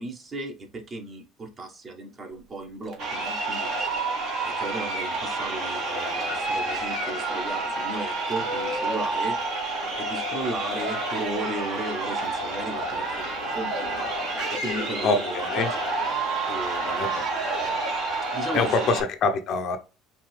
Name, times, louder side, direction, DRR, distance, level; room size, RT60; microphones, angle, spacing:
voice 1, 0.0-3.7 4.4-9.3 10.0-14.1 14.5-15.9 16.5-17.2 18.3-19.0, right 2 dB, 35° right, 3 dB, 1.2 m, -35 dB
Crowd, 2.9-19.0, right 2 dB, 60° right, 1.8 m, -29 dB
voice 2, 15.0-15.7 16.9-17.2 18.5-19.8, left 4 dB, 50° left, 6 dB, 0.7 m, -25 dB
4.9 x 2.7 x 3.3 m, 0.32 s
hypercardioid pair, 65°, 0 cm